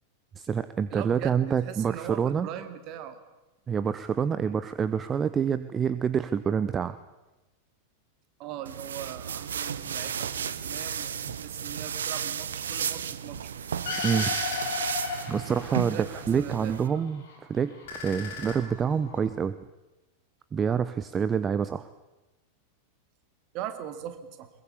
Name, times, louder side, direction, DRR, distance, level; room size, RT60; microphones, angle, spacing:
voice 1, 0.4-2.5 3.7-7.0 14.0-14.3 15.3-17.2 17.5-17.7 18.0-19.5 20.5-21.9, right 7 dB, 20° right, 13 dB, 0.8 m, -27 dB
voice 2, 0.9-3.2 4.4-4.6 8.4-13.5 15.7-17.0 23.5-24.5, right 11 dB, 40° right, 9 dB, 2.5 m, -40 dB
sound 1, 8.7-16.9, right 8 dB, 65° right, 1.1 m, -33 dB
sound 2, 13.9-16.2 16.5-17.4 17.7-19.2, left 5 dB, 55° left, 7.3 m, -35 dB
22.0 x 21.5 x 8.4 m, 1.0 s
figure-of-eight pair, 90°, 0 cm